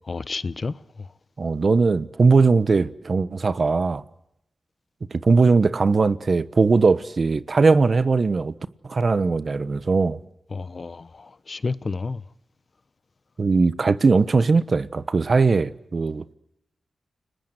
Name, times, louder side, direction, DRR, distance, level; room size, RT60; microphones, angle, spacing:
voice 1, 0.1-1.1 10.5-12.2, left 4 dB, 50° left, 1.0 m, -31 dB
voice 2, 1.4-4.0 5.1-8.5 8.8-10.2 13.4-16.2, right 4 dB, 50° right, 1.1 m, -19 dB
30.0 x 20.0 x 8.0 m
cardioid pair, 70°, 0 cm